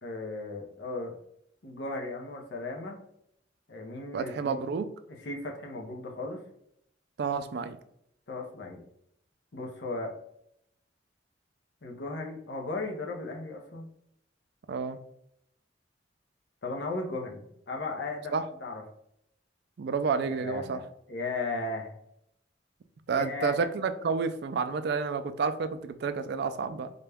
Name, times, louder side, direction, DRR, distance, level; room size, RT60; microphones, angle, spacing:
voice 1, 0.0-1.1 1.6-3.0 3.7-4.6 5.1-6.4 8.3-8.8 9.5-10.1 11.8-13.9 16.6-18.8 20.3-20.8 21.1-21.9 23.1-23.5, left 2 dB, 65° left, 1 dB, 0.7 m, -36 dB
voice 2, 4.1-4.9 7.2-7.8 14.7-15.0 18.3-18.4 19.8-20.8 23.1-26.9, right 5 dB, 60° right, 10 dB, 0.3 m, -30 dB
3.9 x 2.2 x 3.3 m, 0.74 s
head